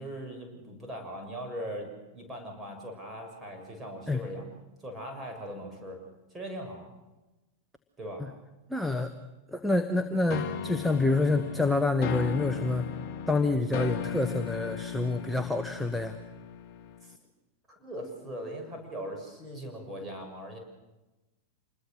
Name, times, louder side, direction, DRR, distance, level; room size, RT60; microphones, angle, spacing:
voice 1, 0.0-4.4 4.8-6.0 6.3-6.9 8.0-8.2 12.5-12.8 17.0-17.1 17.7-20.6, equal, 15° right, 2 dB, 6.5 m, -40 dB
voice 2, 8.7-9.1 9.5-12.9 13.3-16.2, left 2 dB, 5° left, 7 dB, 1.2 m, -27 dB
sound 1, 10.3-17.2, left 8 dB, 45° left, 1.0 m, -37 dB
27.0 x 21.0 x 6.6 m, 1.1 s
figure-of-eight pair, 90°, 0 cm